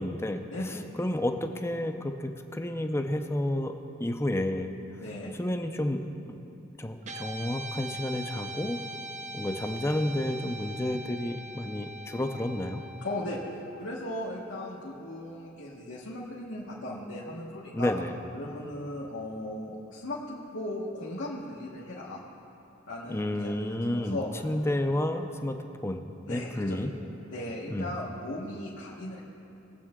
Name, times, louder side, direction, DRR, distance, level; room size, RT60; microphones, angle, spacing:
voice 1, 0.0-3.7 4.0-4.7 5.4-8.8 9.3-12.8 17.7-18.2 23.1-25.6 25.8-26.0 26.3-26.9 27.7-28.0, left 1 dB, 15° left, 6 dB, 0.5 m, -31 dB
voice 2, 0.5-0.8 5.0-5.3 13.0-17.9 18.3-22.2 22.9-24.3 26.3-26.8 27.3-29.2, left 1 dB, 85° left, -6 dB, 1.4 m, -37 dB
Guitar, 7.0-15.5, right 1 dB, 35° right, 0.6 m, -42 dB
20.0 x 7.8 x 3.7 m, 2.9 s
head